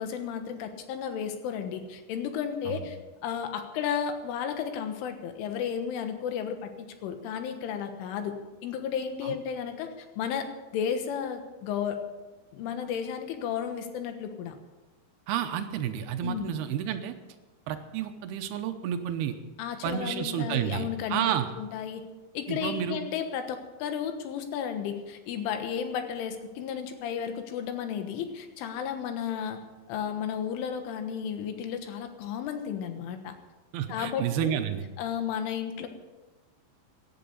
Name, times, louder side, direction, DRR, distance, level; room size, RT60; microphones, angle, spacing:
voice 1, 0.0-8.4 8.6-10.5 10.7-12.1 12.5-14.6 16.2-16.5 19.6-21.3 21.6-22.0 22.4-29.6 29.9-33.4 33.9-34.6 35.0-35.9, left 8 dB, 90° left, 7 dB, 3.8 m, -33 dB
voice 2, 15.3-17.1 17.7-19.3 19.8-21.5 22.5-23.0 33.7-34.9, right 10 dB, 80° right, 7 dB, 2.4 m, -30 dB
17.5 x 11.0 x 5.5 m, 1.2 s
omnidirectional pair, 5.5 m